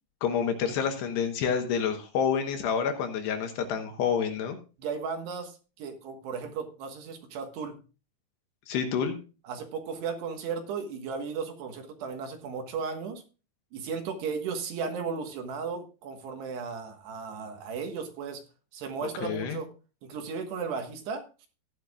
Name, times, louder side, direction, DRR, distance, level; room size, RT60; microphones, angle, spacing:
voice 1, 0.2-4.6 8.7-9.1 19.2-19.6, left 7 dB, 70° left, 6 dB, 3.0 m, -28 dB
voice 2, 4.8-7.8 9.4-13.2 13.7-18.4 18.7-19.7 20.0-21.2, right 5 dB, 70° right, 5 dB, 3.3 m, -35 dB
15.5 x 10.5 x 2.4 m, 0.33 s
omnidirectional pair, 5.5 m